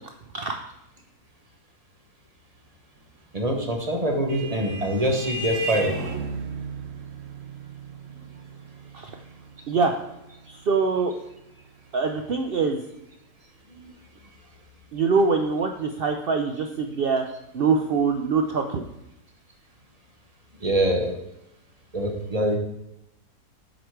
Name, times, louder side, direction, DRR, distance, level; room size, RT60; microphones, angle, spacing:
voice 1, 3.3-5.9 13.8-13.9 20.6-21.2 21.9-22.6, right 1 dB, 30° right, 2 dB, 0.9 m, -24 dB
Vehicle horn car horn honking, 3.7-12.6, right 3 dB, 55° right, 1.2 m, -36 dB
voice 2, 10.5-11.1 11.9-12.8 14.9-17.2 17.5-18.8, right 4 dB, 85° right, 4 dB, 0.5 m, -23 dB
8.0 x 5.0 x 4.6 m, 0.85 s
omnidirectional pair, 1.7 m